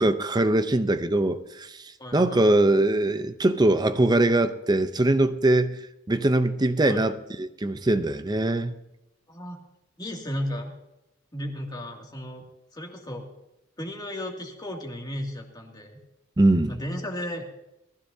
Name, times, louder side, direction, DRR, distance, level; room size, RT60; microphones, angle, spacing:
voice 1, 0.0-1.8 2.1-8.7 16.4-16.7, right 2 dB, 20° right, 10 dB, 0.6 m, -22 dB
voice 2, 2.0-2.5 6.8-7.0 9.3-9.6 10.0-10.7 11.3-12.5 12.7-13.3 13.8-16.0 16.7-17.5, equal, 20° left, 0 dB, 2.4 m, -34 dB
20.0 x 14.5 x 2.8 m, 0.88 s
head